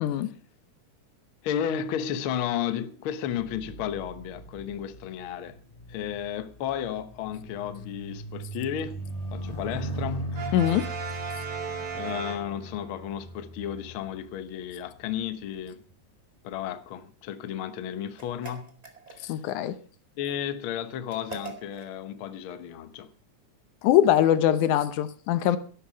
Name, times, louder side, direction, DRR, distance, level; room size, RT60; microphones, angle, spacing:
voice 1, 0.0-0.3 10.5-10.9 19.2-19.8 23.8-25.6, left 11 dB, 85° left, 2.4 m, -22 dB
voice 2, 1.4-5.6 5.9-9.0 9.3-10.4 11.4-15.8 16.4-18.8 19.1-19.4 20.2-23.1, left 9 dB, 60° left, 1.4 m, -33 dB
sound 1, 3.3-14.9 15.7-15.9, right 1 dB, 25° left, 0.8 m, -39 dB
Brass instrument, 10.3-13.0, right 6 dB, 70° right, 3.2 m, -36 dB
sound 2, 18.2-19.5 21.1-21.9, right 5 dB, 15° right, 2.0 m, -43 dB
13.0 x 11.5 x 5.2 m
omnidirectional pair, 3.4 m